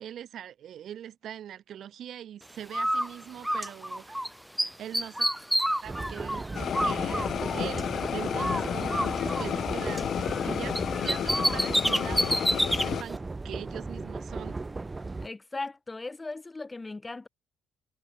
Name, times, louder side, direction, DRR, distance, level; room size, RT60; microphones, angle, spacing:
voice 1, 0.0-4.2 4.6-5.3 5.8-6.5 6.8-10.8 11.0-14.6, right 10 dB, 70° right, 3.4 m, -42 dB
Bird, 2.7-4.3 4.6-8.0 8.4-10.5 10.8-12.9, equal, 5° right, 1.3 m, -29 dB
sound 1, 5.8-15.3, right 3 dB, 25° right, 0.6 m, -37 dB
sound 2, 6.5-13.0, left 9 dB, 60° left, 0.7 m, -31 dB
voice 2, 15.2-17.3, left 3 dB, 20° left, 5.0 m, -38 dB
cardioid pair, 90°, 0 cm